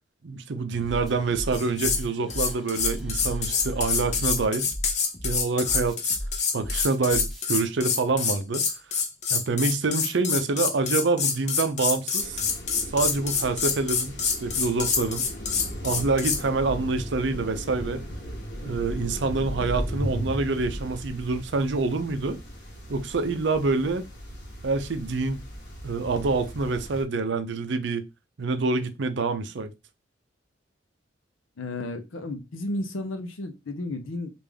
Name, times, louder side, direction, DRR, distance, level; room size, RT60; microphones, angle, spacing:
voice 1, 0.2-4.7 5.2-6.2 6.5-8.6 9.3-12.4 12.9-15.3 15.8-18.0 18.6-22.4 22.9-24.0 24.6-25.4 25.8-28.1 28.4-29.7, right 3 dB, 65° right, 0.5 m, -26 dB
sound 1, 0.7-7.4, equal, ahead, 0.8 m, -35 dB
sound 2, 1.5-2.0 2.3-16.4, left 6 dB, 35° left, 0.6 m, -26 dB
sound 3, 12.2-27.0, equal, 55° left, 1.0 m, -37 dB
voice 2, 31.6-34.3, left 2 dB, 85° left, 0.6 m, -33 dB
3.4 x 2.5 x 3.4 m
head